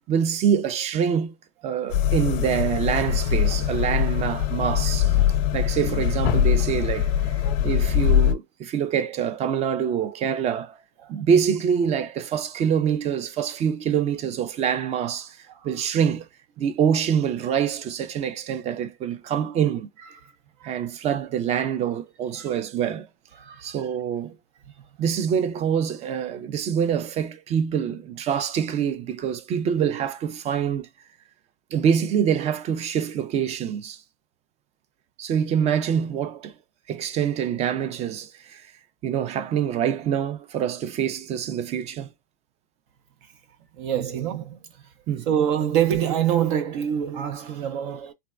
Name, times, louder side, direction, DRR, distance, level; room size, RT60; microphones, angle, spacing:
voice 1, 0.1-1.3 1.6-5.1 5.5-10.8 11.1-15.4 15.6-16.3 16.6-19.9 20.6-23.1 23.6-24.3 25.0-30.9 31.7-34.0 35.2-36.5 36.9-38.7 39.0-42.1 45.1-45.3, right 8 dB, 25° right, 0.4 m, -25 dB
sound 1, 1.9-8.3, left 9 dB, 40° left, 0.5 m, -22 dB
voice 2, 23.4-23.8 43.8-44.6 45.3-48.1, right 9 dB, 60° right, 0.6 m, -25 dB
3.3 x 2.1 x 2.4 m
hypercardioid pair, 120°, 29 cm